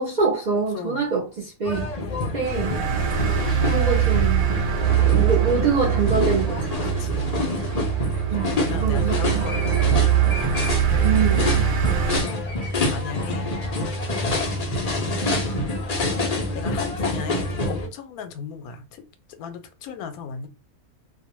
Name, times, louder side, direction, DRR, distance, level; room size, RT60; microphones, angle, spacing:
voice 1, 0.0-1.9 2.3-2.8 3.7-4.5 5.0-6.6 8.3-8.6 8.8-9.5 11.0-11.7, right 4 dB, 55° right, 0.5 m, -25 dB
voice 2, 0.7-1.0 2.0-2.3 3.2-3.9 5.0-5.7 6.8-7.3 8.5-12.2 12.9-13.5 14.5-15.2 16.5-19.0 19.4-20.5, left 6 dB, 80° left, 1.0 m, -36 dB
sound 1, 1.6-17.9, left 2 dB, 50° left, 0.4 m, -27 dB
sound 2, 2.4-12.2, right 10 dB, 75° right, 0.9 m, -22 dB
2.5 x 2.1 x 2.9 m
omnidirectional pair, 1.5 m